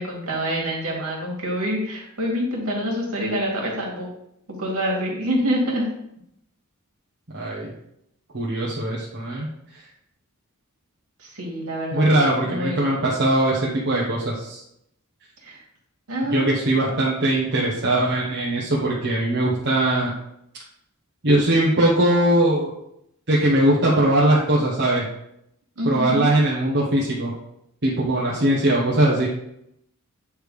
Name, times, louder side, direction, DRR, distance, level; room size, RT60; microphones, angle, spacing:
voice 1, 0.0-4.1 4.5-5.9 11.2-12.1 12.5-12.8 15.4-15.6 16.1-16.6 25.8-26.3, equal, 75° right, -2 dB, 2.3 m, -26 dB
voice 2, 7.3-7.7 8.3-9.5 11.9-14.6 16.2-20.1 21.2-22.7 23.3-25.0 25.8-27.3 27.8-29.3, right 1 dB, 50° right, -5 dB, 1.2 m, -20 dB
8.6 x 3.4 x 4.9 m, 0.78 s
head